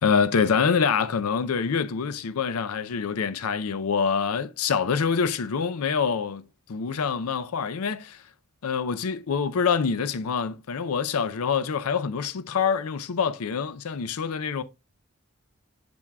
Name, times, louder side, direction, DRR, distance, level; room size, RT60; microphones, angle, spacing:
voice 1, 0.0-6.4 6.7-8.2 8.6-14.6, left 6 dB, 85° left, 0.5 m, -25 dB
7.2 x 6.2 x 2.2 m
head